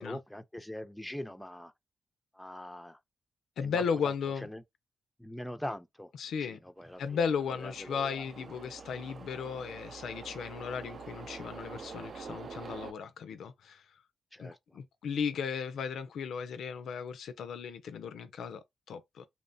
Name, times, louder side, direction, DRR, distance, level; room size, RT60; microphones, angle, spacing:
voice 1, 0.0-1.7 2.3-3.0 3.6-4.6 5.2-6.1 6.4-7.2 7.5-8.2 14.3-14.8, left 1 dB, 5° left, 0.4 m, -43 dB
voice 2, 3.6-4.5 6.2-6.6 7.0-13.9 14.4-19.3, left 6 dB, 80° left, 0.3 m, -35 dB
sound 1, 6.8-12.9, right 5 dB, 60° right, 0.4 m, -46 dB
2.8 x 2.0 x 2.6 m
cardioid pair, 60°, 0 cm